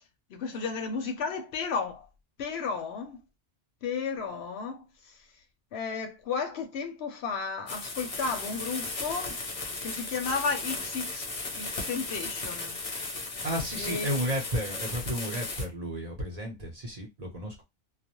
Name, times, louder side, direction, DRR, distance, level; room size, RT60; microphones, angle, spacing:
voice 1, 0.3-2.1 2.4-3.2 3.8-5.2 5.7-9.4 9.8-12.7 13.8-14.3, left 5 dB, 70° left, 0.8 m, -33 dB
sound 1, 7.7-15.6, left 3 dB, 40° left, 0.6 m, -36 dB
voice 2, 13.4-17.6, equal, 40° right, 0.8 m, -33 dB
2.3 x 2.0 x 2.9 m
omnidirectional pair, 1.2 m